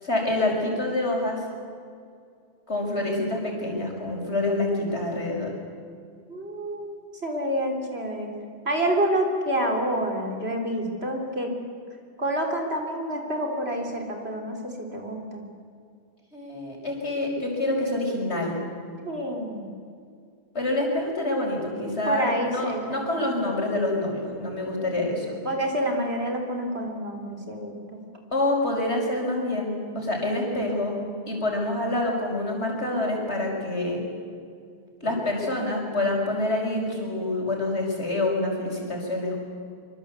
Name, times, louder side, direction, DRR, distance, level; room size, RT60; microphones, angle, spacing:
voice 1, 0.0-1.4 2.7-5.5 16.3-18.6 20.5-25.4 28.3-31.0 31.3-34.1 35.0-39.4, left 2 dB, 75° left, 0 dB, 5.8 m, -27 dB
voice 2, 6.3-6.9 7.2-8.3 8.7-11.5 12.2-15.5 19.1-19.7 22.1-23.0 25.4-28.0, right 1 dB, 65° right, 2 dB, 4.0 m, -28 dB
24.5 x 24.5 x 8.3 m, 2.3 s
omnidirectional pair, 1.1 m